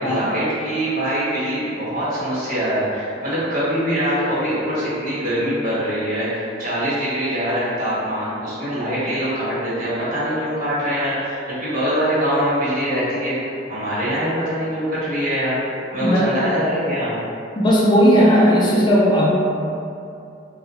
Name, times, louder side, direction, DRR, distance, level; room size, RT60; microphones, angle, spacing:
voice 1, 0.0-15.6 15.9-17.2, equal, 50° right, -11 dB, 1.3 m, -23 dB
voice 2, 17.6-19.3, equal, 25° left, -5 dB, 0.4 m, -15 dB
2.7 x 2.3 x 3.6 m, 2.6 s
head